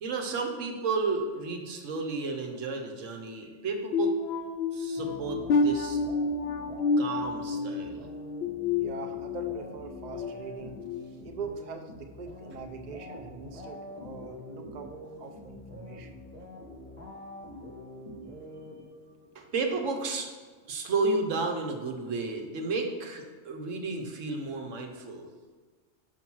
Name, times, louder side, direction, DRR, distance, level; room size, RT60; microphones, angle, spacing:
voice 1, 0.0-4.2 4.7-6.0 7.0-8.1 19.3-20.3 20.6-25.3, right 3 dB, 90° right, 3 dB, 1.3 m, -32 dB
sound 1, 3.9-9.6 10.0-10.3 10.8-11.0, left 3 dB, 65° left, 0.8 m, -29 dB
sound 2, 5.0-19.3, left 1 dB, 10° right, 1.0 m, -45 dB
voice 2, 8.8-10.8 11.2-16.2, right 5 dB, 45° right, 4 dB, 0.6 m, -42 dB
5.8 x 4.7 x 6.0 m, 1.5 s
omnidirectional pair, 1.3 m